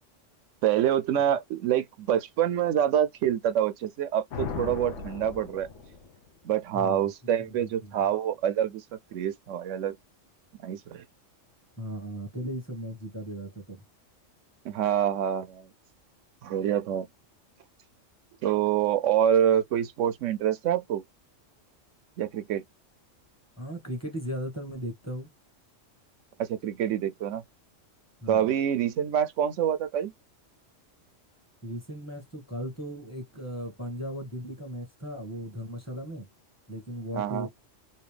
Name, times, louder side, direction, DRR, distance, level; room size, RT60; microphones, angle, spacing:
voice 1, 0.6-5.7 6.4-8.8 9.1-10.0 10.6-11.0 14.6-15.7 16.4-17.1 18.4-21.0 22.2-22.6 26.4-27.4 28.3-30.1 37.1-37.5, right 10 dB, 75° right, 0.9 m, -26 dB
sound 1, 4.3-6.3, left 5 dB, 70° left, 1.1 m, -37 dB
voice 2, 6.7-7.1 7.5-8.0 11.8-13.8 23.6-25.3 28.2-28.5 31.6-36.3 36.7-37.5, equal, 15° left, 1.2 m, -37 dB
3.2 x 2.7 x 3.3 m
omnidirectional pair, 1.3 m